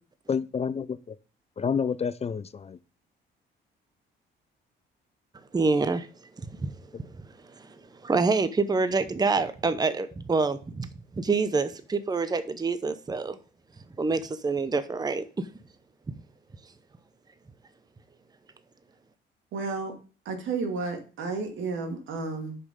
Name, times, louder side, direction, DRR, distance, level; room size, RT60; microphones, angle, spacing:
voice 1, 0.3-1.2 1.6-2.8, left 6 dB, 30° left, 0.5 m, -29 dB
voice 2, 5.5-6.1 6.6-6.7 7.0-7.1 7.6-7.8 8.0-10.9 11.2-13.4 14.0-15.5, right 4 dB, 20° right, 0.7 m, -26 dB
voice 3, 19.5-19.9 20.3-22.6, right 4 dB, 75° right, 2.2 m, -32 dB
6.6 x 5.4 x 5.1 m
cardioid pair, 90°, 20 cm